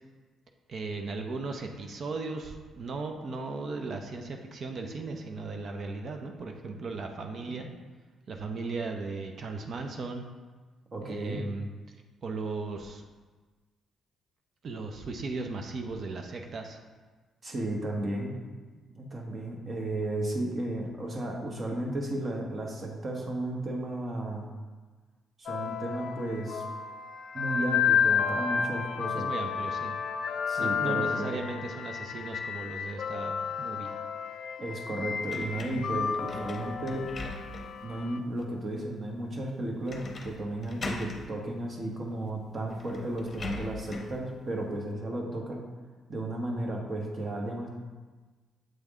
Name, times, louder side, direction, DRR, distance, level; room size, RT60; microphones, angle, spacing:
voice 1, 0.7-7.7 8.3-10.2 11.0-12.0 12.2-13.1 14.6-16.8 29.1-30.0 30.6-33.9, right 3 dB, 55° right, 4 dB, 0.6 m, -37 dB
voice 2, 10.9-11.4 17.4-18.3 18.9-24.5 25.4-26.6 27.3-29.3 30.5-31.3 34.6-37.1 37.8-45.6 46.1-47.7, right 1 dB, 40° right, 0 dB, 1.1 m, -34 dB
sound 1, 25.5-38.2, left 7 dB, 60° left, 0.3 m, -31 dB
sound 2, 35.3-37.9 38.4-38.5 39.9-40.4 40.6-41.3 42.3-42.4 42.7-44.2, left 2 dB, 40° left, 0.7 m, -40 dB
7.8 x 3.4 x 3.6 m, 1.3 s
cardioid pair, 90°, 0 cm